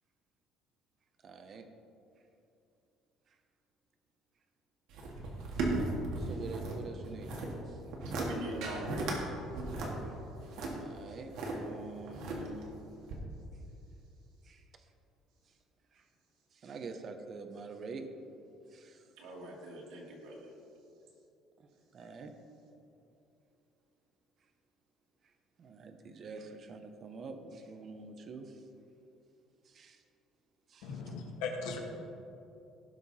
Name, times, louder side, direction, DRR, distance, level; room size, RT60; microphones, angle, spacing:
voice 1, 1.2-1.7 6.2-7.3 7.7-7.8 10.0-10.1 10.8-12.7 14.5-14.6 16.6-18.1 18.7-19.0 21.9-22.3 25.6-28.6 29.7-30.0, right 4 dB, 30° right, 6 dB, 0.7 m, -46 dB
sound 1, 4.9-6.8 7.0-7.5 7.9-8.3 8.6-9.2 9.5-11.5 12.1-12.7 13.1-13.2, right 2 dB, 60° right, 1.9 m, -36 dB
voice 2, 8.2-9.1 19.2-20.5 22.0-22.1, right 1 dB, 80° right, -3 dB, 2.5 m, -42 dB
voice 3, 30.8-31.8, left 4 dB, 85° left, 2 dB, 1.6 m, -38 dB
17.0 x 5.7 x 4.1 m, 2.8 s
cardioid pair, 180°, 0 cm